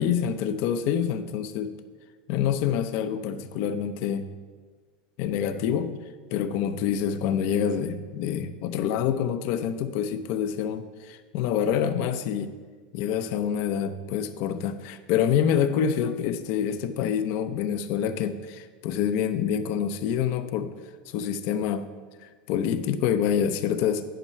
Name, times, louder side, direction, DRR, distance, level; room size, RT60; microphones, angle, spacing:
voice 1, 0.0-1.7 2.3-4.3 5.2-5.9 6.3-12.5 12.9-20.7 21.1-21.9 22.2-24.1, left 8 dB, 55° left, 11 dB, 0.6 m, -26 dB
10.5 x 5.4 x 4.4 m, 1.5 s
supercardioid pair, 120°, 5 cm